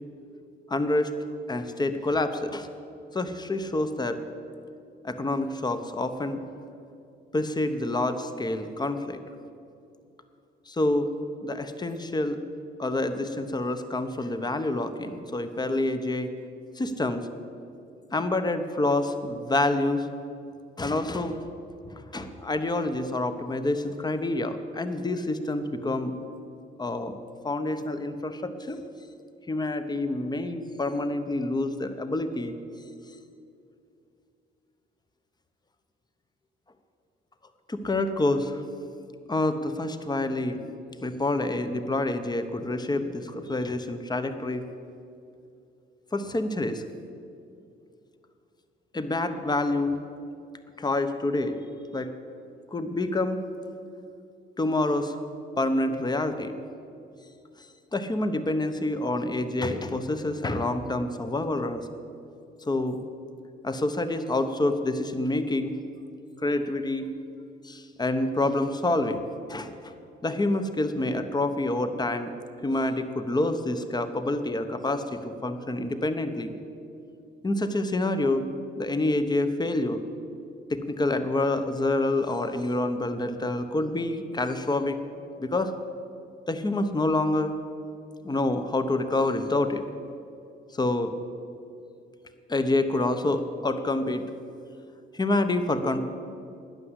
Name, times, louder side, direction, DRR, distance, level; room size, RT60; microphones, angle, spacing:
voice 1, 0.7-1.1 1.5-2.7 3.1-4.2 5.0-6.4 7.3-9.2 10.7-11.1 11.4-12.4 12.8-16.3 16.8-17.3 18.1-20.1 20.8-21.4 21.9-26.1 26.8-27.2 27.4-28.8 29.5-32.5 37.7-38.6 39.3-40.6 41.0-44.6 46.1-46.8 48.9-50.0 50.8-51.6 51.9-52.1 52.7-53.4 54.6-55.2 55.6-56.6 57.9-61.9 62.7-63.0 63.6-65.8 66.4-67.1 67.6-69.2 69.5-69.7 70.2-72.3 72.6-76.5 77.4-78.5 78.8-80.0 80.7-85.0 85.4-85.7 86.5-87.5 88.2-89.8 90.8-91.1 92.5-94.3 95.1-96.0, left 2 dB, 20° left, 9 dB, 1.1 m, -27 dB
12.0 x 9.9 x 8.1 m, 2.6 s
cardioid pair, 90°, 20 cm